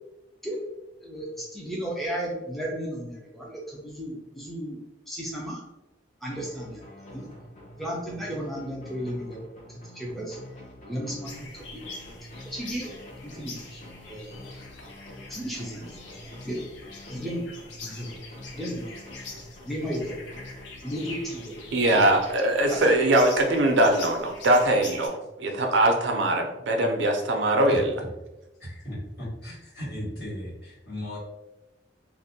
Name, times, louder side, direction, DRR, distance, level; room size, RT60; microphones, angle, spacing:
voice 1, 1.0-4.8 5.1-5.6 6.2-6.8 7.1-7.2 7.8-10.4 10.9-11.8 12.3-12.9 13.2-13.8 14.1-14.5 15.3-15.9 16.2-16.6 17.1-17.5 17.8-18.2 18.5-18.9 19.6-20.2 20.8-21.6 21.9-22.0 22.7-22.8, equal, ahead, -4 dB, 0.4 m, -34 dB
sound 1, 6.3-22.8, left 1 dB, 40° left, 0.7 m, -46 dB
sound 2, 11.2-25.1, left 3 dB, 80° left, 0.5 m, -44 dB
voice 2, 21.7-27.9, right 1 dB, 80° right, 3 dB, 0.4 m, -22 dB
voice 3, 27.7-28.1 28.6-31.2, left 1 dB, 60° left, -8 dB, 1.3 m, -36 dB
2.5 x 2.1 x 2.6 m, 0.99 s
head